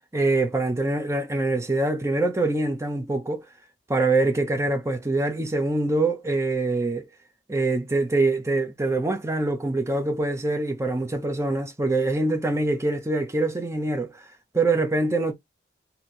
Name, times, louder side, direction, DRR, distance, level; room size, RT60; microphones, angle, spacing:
voice 1, 0.1-3.4 3.9-7.1 7.5-14.2 14.5-15.3, right 2 dB, 15° right, 0.6 m, -24 dB
3.0 x 2.7 x 4.1 m
head